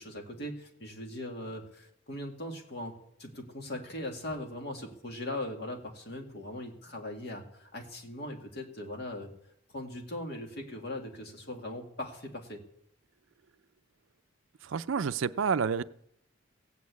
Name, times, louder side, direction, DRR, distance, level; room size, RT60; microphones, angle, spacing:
voice 1, 0.0-9.3 9.7-12.6, left 1 dB, 50° left, 2 dB, 2.2 m, -40 dB
voice 2, 14.6-15.8, right 6 dB, 75° right, 14 dB, 0.5 m, -29 dB
16.5 x 8.4 x 8.3 m, 0.76 s
head